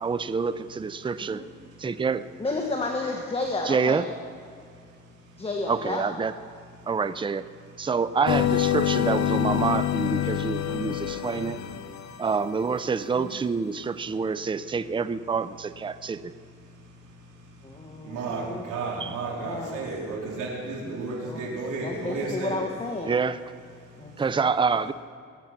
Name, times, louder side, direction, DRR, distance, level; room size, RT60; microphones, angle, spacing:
voice 1, 0.0-1.4 1.8-2.2 3.7-4.0 5.7-6.3 6.9-7.5 7.8-11.6 12.2-16.3 19.0-19.2 23.0-23.4 24.2-24.9, right 5 dB, 15° right, 14 dB, 0.5 m, -27 dB
voice 2, 2.4-4.1 5.4-6.0 13.1-13.4 17.6-18.7 19.4-19.8 21.2-21.5 21.8-23.1 24.0-24.5, left 3 dB, 20° left, 1 dB, 1.5 m, -32 dB
sound 1, 8.3-12.5, left 11 dB, 65° left, 0.9 m, -26 dB
voice 3, 18.0-22.6, right 3 dB, 90° right, -3 dB, 4.0 m, -32 dB
21.5 x 8.8 x 6.0 m, 2.3 s
cardioid pair, 90°, 30 cm